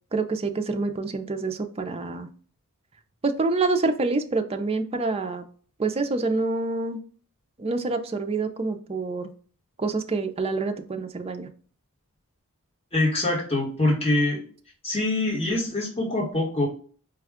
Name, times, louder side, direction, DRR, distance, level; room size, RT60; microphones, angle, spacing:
voice 1, 0.1-2.3 3.2-5.4 5.8-7.0 7.6-9.3 9.8-11.5, right 3 dB, 25° right, 6 dB, 0.4 m, -27 dB
voice 2, 12.9-14.4 14.8-16.7, left 2 dB, 25° left, -4 dB, 1.3 m, -24 dB
5.1 x 2.3 x 3.5 m, 0.43 s
head